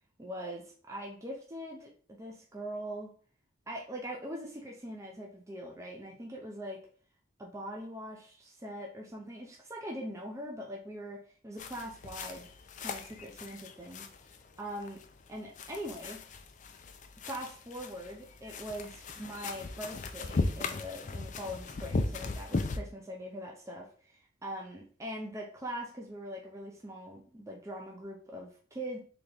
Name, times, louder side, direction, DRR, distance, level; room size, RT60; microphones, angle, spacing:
voice 1, 0.2-3.1 3.7-6.8 7.4-12.5 12.8-14.1 14.6-15.0 15.3-16.2 17.3-29.0, equal, 15° right, -1 dB, 0.6 m, -42 dB
sound 1, 11.6-22.8, left 3 dB, 40° left, 0.4 m, -38 dB
4.0 x 3.5 x 3.4 m, 0.43 s
head